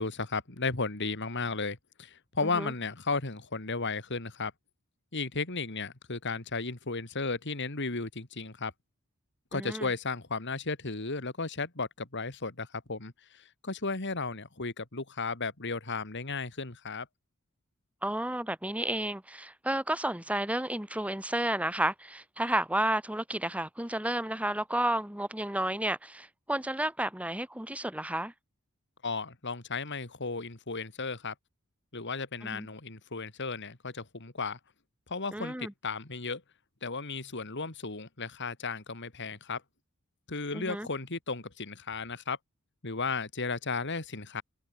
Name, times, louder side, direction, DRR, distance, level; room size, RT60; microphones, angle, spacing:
voice 1, 0.0-4.5 5.1-8.7 9.5-17.1 29.0-31.3 31.9-34.6 35.1-36.4 36.8-39.6 40.3-42.4 42.8-44.4, left 4 dB, 55° left, 2.6 m, -34 dB
voice 2, 2.4-2.7 9.5-9.9 18.0-28.3 32.4-32.7 35.3-35.7 40.5-40.9, right 1 dB, 5° right, 2.4 m, -32 dB
head